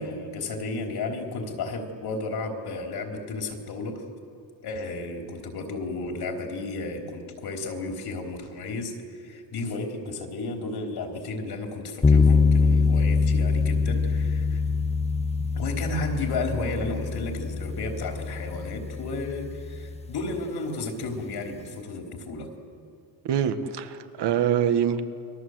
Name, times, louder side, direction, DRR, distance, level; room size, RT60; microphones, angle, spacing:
voice 1, 0.0-4.0 4.6-14.6 15.5-22.5, left 3 dB, 70° left, 3 dB, 3.9 m, -33 dB
sound 1, 12.0-20.2, left 4 dB, 15° left, 0.7 m, -24 dB
voice 2, 23.2-25.0, right 9 dB, 80° right, 9 dB, 1.8 m, -24 dB
30.0 x 22.5 x 8.0 m, 2.4 s
cardioid pair, 130°, 40 cm